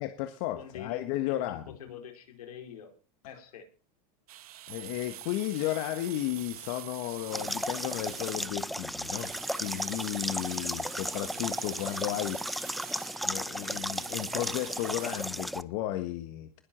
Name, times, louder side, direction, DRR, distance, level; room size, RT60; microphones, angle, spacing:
voice 1, 0.0-1.8 4.7-9.3 9.6-12.4 13.2-16.6, left 14 dB, 60° left, 9 dB, 1.6 m, -34 dB
voice 2, 0.6-2.9 3.2-3.7, left 8 dB, 85° left, 4 dB, 4.6 m, -46 dB
sound 1, 4.3-15.2, right 14 dB, 80° right, 1.5 m, -45 dB
sound 2, 7.3-15.6, equal, ahead, 0.6 m, -35 dB
21.0 x 7.7 x 4.5 m, 0.34 s
hypercardioid pair, 115°, 19 cm